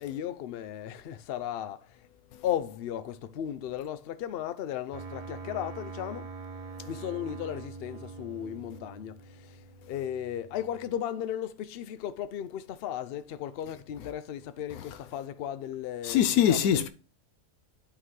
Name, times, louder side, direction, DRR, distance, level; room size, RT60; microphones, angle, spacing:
voice 1, 0.0-1.8 2.4-6.2 6.9-9.1 9.9-16.9, left 10 dB, 65° left, 0.6 m, -35 dB
sound 1, 4.9-10.9, right 4 dB, 55° right, 0.4 m, -44 dB
voice 2, 16.0-16.9, left 9 dB, 90° left, 1.1 m, -23 dB
11.5 x 3.9 x 3.2 m
omnidirectional pair, 1.5 m